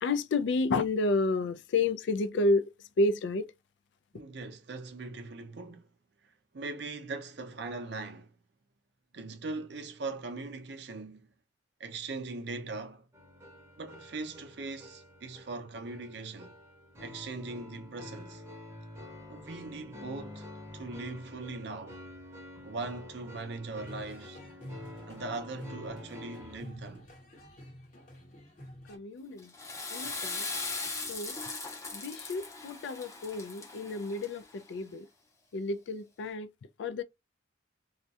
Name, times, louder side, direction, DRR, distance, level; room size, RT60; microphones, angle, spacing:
voice 1, 0.0-2.6 3.0-3.4 28.9-29.5 29.9-30.4 31.1-31.3 31.9-34.4 34.7-35.1 35.5-36.5 36.8-37.0, left 2 dB, 70° left, 0.3 m, -30 dB
voice 2, 4.1-5.9 6.2-8.3 9.1-11.3 11.8-13.1 13.8-16.6 17.0-18.4 19.3-22.0 22.6-24.4 25.1-27.1, right 3 dB, 60° right, 0.5 m, -40 dB
sound 1, 13.1-26.6, left 1 dB, 15° right, 0.7 m, -48 dB
sound 2, 23.7-29.0, left 1 dB, 40° left, 1.0 m, -48 dB
Water / Toilet flush, 29.4-34.6, left 3 dB, 15° left, 0.5 m, -39 dB
2.4 x 2.1 x 2.6 m
head